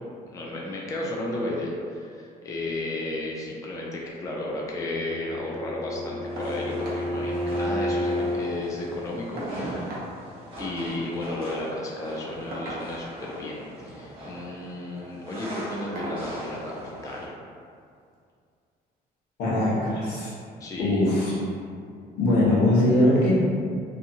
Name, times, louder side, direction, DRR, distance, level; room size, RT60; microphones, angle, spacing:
voice 1, 0.2-9.9 10.6-16.8 17.0-17.3 20.6-21.0, left 1 dB, 20° left, -3 dB, 0.4 m, -33 dB
Bowed string instrument, 4.8-8.5, left 1 dB, 45° left, 1.4 m, -30 dB
sound 1, 6.2-17.3, right 1 dB, 30° right, 0.9 m, -40 dB
sound 2, 6.4-6.6 6.8-7.1 7.4-7.5 7.8-8.5 9.4-10.1 11.3-11.5 12.5-13.2 14.2-14.5 15.0-15.2 16.0-16.3 17.5-17.6 18.1-18.2, right 1 dB, 60° right, 0.7 m, -39 dB
voice 2, 19.4-20.3 20.8-21.3 22.2-23.3, left 1 dB, 85° left, -7 dB, 0.9 m, -21 dB
2.8 x 2.2 x 2.6 m, 2.3 s
cardioid pair, 110°, 17 cm